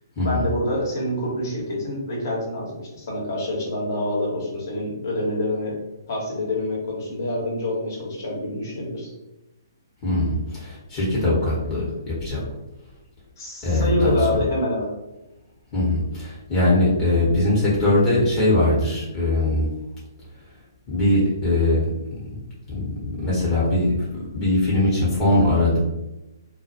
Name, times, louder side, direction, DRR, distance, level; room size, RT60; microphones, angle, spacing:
voice 1, 0.2-5.8 6.1-9.1 13.4-14.9, left 1 dB, 55° left, -3 dB, 1.0 m, -26 dB
voice 2, 10.0-12.4 13.6-14.2 15.7-19.7 20.9-21.9 22.7-25.8, left 1 dB, 25° left, -7 dB, 0.9 m, -21 dB
2.3 x 2.1 x 2.7 m, 0.97 s
figure-of-eight pair, 130°, 2 cm